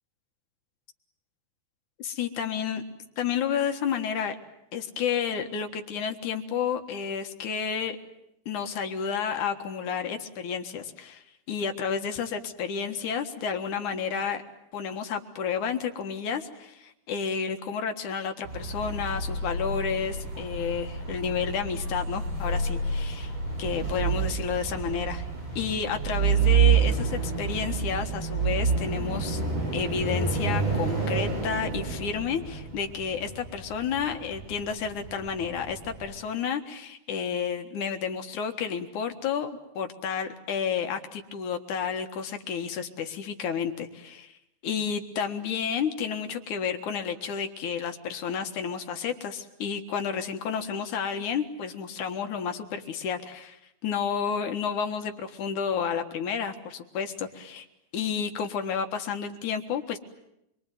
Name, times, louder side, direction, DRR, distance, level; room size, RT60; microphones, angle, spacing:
voice 1, 2.0-2.8 3.2-4.4 4.7-8.0 8.5-14.4 14.7-23.3 23.6-25.2 25.6-29.4 29.7-44.3 44.6-57.7 57.9-60.0, left 7 dB, 60° left, 6 dB, 2.7 m, -31 dB
sound 1, 18.4-36.2, right 5 dB, 30° right, 6.6 m, -29 dB
27.0 x 23.0 x 9.3 m, 0.81 s
omnidirectional pair, 4.6 m